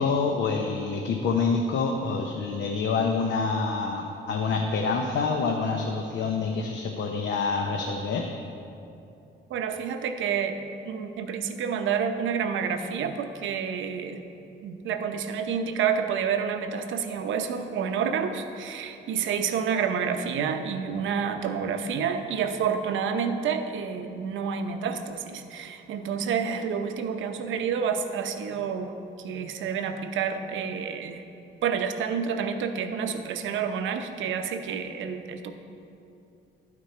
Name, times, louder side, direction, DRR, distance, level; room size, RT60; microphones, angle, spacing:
voice 1, 0.0-8.3, left 4 dB, 70° left, 3 dB, 0.7 m, -27 dB
voice 2, 9.5-14.2 14.6-31.2 31.6-35.5, right 7 dB, 75° right, 7 dB, 0.7 m, -29 dB
11.5 x 6.1 x 4.3 m, 2.7 s
cardioid pair, 90°, 20 cm